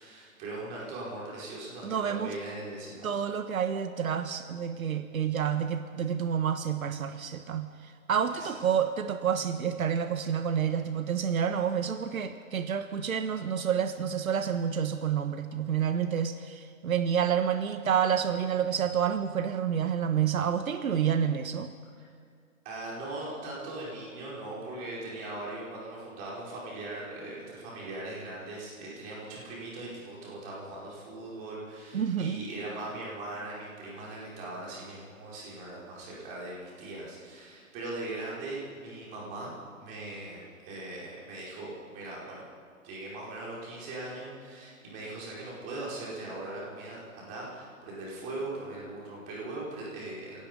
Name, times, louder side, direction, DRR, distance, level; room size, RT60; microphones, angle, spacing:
voice 1, 0.0-3.1 8.3-8.5 22.6-39.5 39.8-42.4 42.8-50.4, right 2 dB, 20° right, -5 dB, 4.8 m, -40 dB
voice 2, 1.8-2.3 3.0-21.7 31.9-32.4, right 8 dB, 75° right, 9 dB, 1.4 m, -29 dB
28.5 x 17.5 x 5.4 m, 2.2 s
hypercardioid pair, 170°, 41 cm